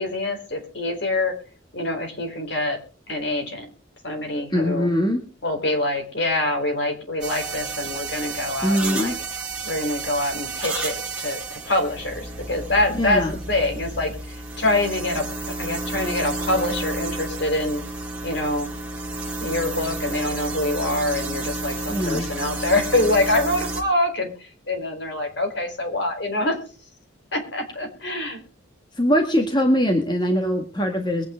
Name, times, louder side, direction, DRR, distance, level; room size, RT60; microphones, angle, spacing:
voice 1, 0.0-1.3 1.7-2.8 3.1-3.7 4.0-4.9 5.4-9.2 9.6-17.8 18.2-18.7 19.4-26.6 27.3-28.4, left 2 dB, 60° left, 4 dB, 4.3 m, -25 dB
voice 2, 4.5-5.2 8.6-9.2 12.9-13.3 21.9-22.3 29.0-31.2, equal, 20° left, 4 dB, 1.8 m, -22 dB
sound 1, 7.2-23.8, right 3 dB, 5° right, 2.6 m, -31 dB
22.5 x 9.4 x 3.8 m, 0.36 s
head